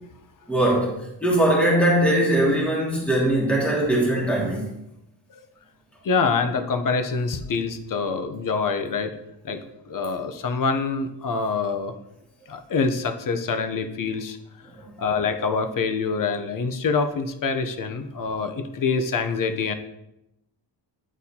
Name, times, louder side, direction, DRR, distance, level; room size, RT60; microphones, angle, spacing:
voice 1, 0.5-4.8, right 1 dB, 5° left, -5 dB, 1.9 m, -21 dB
voice 2, 6.0-9.1 9.4-9.6 9.9-11.9 12.5-14.4 15.0-19.7, left 4 dB, 45° left, 8 dB, 0.7 m, -25 dB
9.2 x 4.1 x 2.8 m, 0.87 s
cardioid pair, 105°, 44 cm